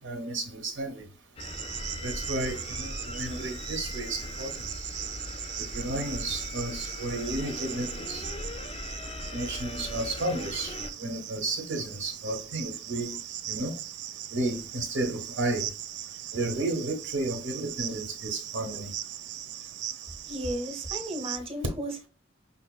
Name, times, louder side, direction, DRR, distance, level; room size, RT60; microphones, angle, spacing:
voice 1, 0.0-1.1 2.0-4.7 5.6-8.2 9.3-13.2 13.5-13.8 14.3-15.7 16.3-18.9, right 2 dB, 85° right, 1.0 m, -32 dB
sound 1, 1.4-10.9, left 2 dB, 30° left, 0.4 m, -39 dB
Cricket, 1.4-21.4, right 11 dB, 60° right, 0.3 m, -39 dB
voice 2, 20.3-22.1, right 1 dB, 30° right, 0.9 m, -34 dB
5.3 x 2.9 x 2.2 m
head